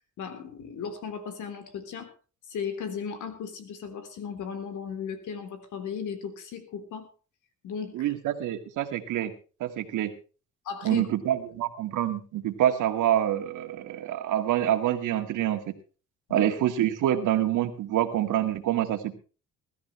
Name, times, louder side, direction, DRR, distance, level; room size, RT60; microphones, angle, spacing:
voice 1, 0.2-2.1 2.5-7.1 7.6-8.1 10.6-11.0 16.3-16.5, left 7 dB, 80° left, 8 dB, 3.6 m, -36 dB
voice 2, 7.9-9.3 9.6-10.1 10.8-15.7 16.3-19.1, right 12 dB, 85° right, 8 dB, 2.0 m, -26 dB
21.0 x 13.0 x 3.3 m, 0.36 s
cardioid pair, 90°, 30 cm